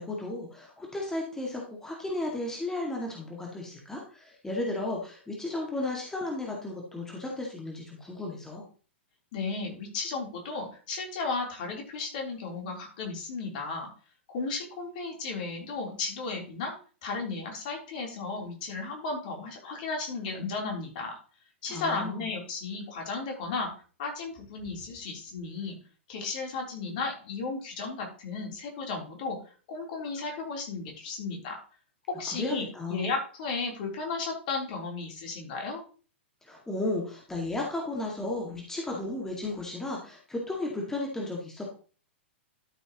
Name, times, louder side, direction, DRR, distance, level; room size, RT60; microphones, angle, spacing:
voice 1, 0.0-8.6 21.7-22.2 32.4-33.0 36.4-41.8, left 2 dB, 5° left, -2 dB, 2.1 m, -34 dB
voice 2, 9.3-13.9 14.3-16.7 17.0-21.1 21.6-23.7 24.0-25.8 26.1-29.4 29.7-31.6 32.1-35.8, left 4 dB, 45° left, 0 dB, 3.7 m, -34 dB
12.5 x 6.8 x 3.1 m, 0.38 s
figure-of-eight pair, 105°, 6 cm